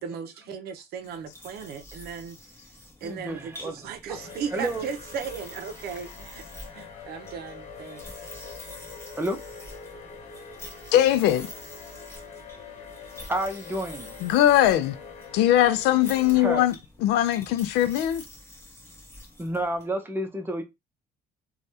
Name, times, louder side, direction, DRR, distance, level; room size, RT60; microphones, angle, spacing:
voice 1, 0.0-2.4 3.0-6.4 6.7-8.0, right 6 dB, 70° right, 0.6 m, -36 dB
sound 1, 1.0-19.9, left 1 dB, 15° left, 1.0 m, -47 dB
voice 2, 3.0-3.9 4.5-4.9 9.2-9.4 13.3-14.1 16.4-16.7 19.4-20.6, right 1 dB, 15° right, 0.7 m, -30 dB
sound 2, 4.1-16.6, left 5 dB, 45° left, 0.8 m, -44 dB
voice 3, 10.9-11.5 14.2-14.9 15.3-16.7 17.0-18.2, left 12 dB, 85° left, 0.4 m, -20 dB
3.3 x 2.3 x 2.7 m
cardioid pair, 110°, 17 cm